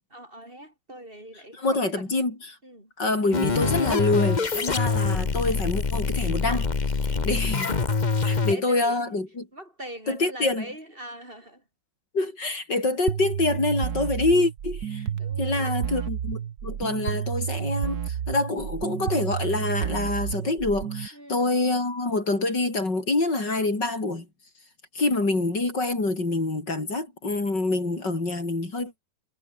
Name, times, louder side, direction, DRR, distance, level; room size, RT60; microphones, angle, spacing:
voice 1, 0.1-1.8 2.1-2.3 2.6-2.9 7.1-7.5 8.2-9.0 9.5-11.6 15.2-15.9 21.1-21.4, right 1 dB, 25° right, 6.0 m, -42 dB
voice 2, 1.3-2.6 3.0-6.7 7.2-7.7 8.2-9.5 10.1-10.7 12.1-15.0 15.4-24.3 24.9-29.0, left 2 dB, 65° left, 6.3 m, -26 dB
sound 1, 3.3-8.5, left 4 dB, 25° left, 1.2 m, -25 dB
sound 2, 13.1-21.1, right 9 dB, 55° right, 1.6 m, -30 dB
omnidirectional pair, 2.1 m